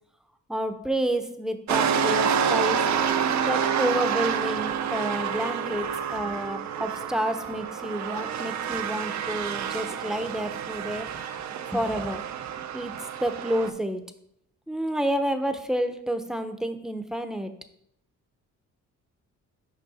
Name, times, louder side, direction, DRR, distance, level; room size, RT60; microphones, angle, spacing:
voice 1, 0.5-2.8 3.4-11.1 11.7-12.2 12.7-12.9 13.2-14.0 14.7-17.5, right 1 dB, ahead, 8 dB, 0.7 m, -29 dB
sound 1, 1.7-13.7, right 7 dB, 65° right, 0.7 m, -28 dB
6.4 x 5.2 x 4.1 m, 0.76 s
cardioid pair, 90°, 30 cm